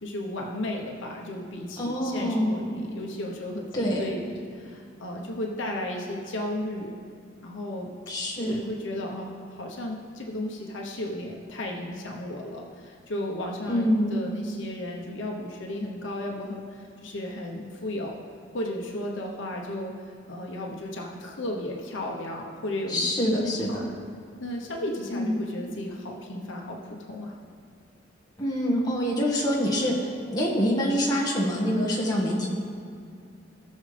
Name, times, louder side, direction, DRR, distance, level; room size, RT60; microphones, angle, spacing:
voice 1, 0.0-7.0 7.4-7.9 8.4-18.2 18.5-19.9 20.3-23.1 23.4-23.9 24.4-27.3, left 1 dB, 70° left, -1 dB, 1.0 m, -34 dB
voice 2, 1.8-2.5 3.7-4.1 8.1-8.6 13.7-14.2 22.9-23.9 25.1-25.4 28.4-30.0 30.3-32.5, equal, 20° left, -5 dB, 1.6 m, -25 dB
18.5 x 6.4 x 3.4 m, 2.3 s
head